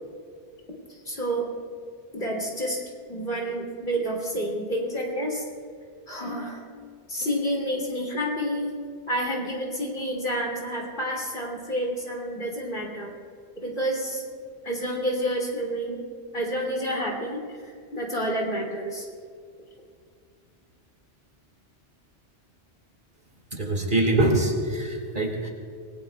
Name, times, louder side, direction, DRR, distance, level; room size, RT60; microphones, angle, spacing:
voice 1, 1.1-1.5 2.1-2.8 3.1-5.5 6.1-6.6 7.1-8.8 9.1-13.1 13.6-14.2 14.6-16.0 16.3-19.1, equal, 50° left, -2 dB, 3.1 m, -29 dB
voice 2, 23.5-25.5, right 2 dB, 45° right, 1 dB, 2.2 m, -24 dB
27.5 x 19.0 x 2.3 m, 2.2 s
omnidirectional pair, 1.2 m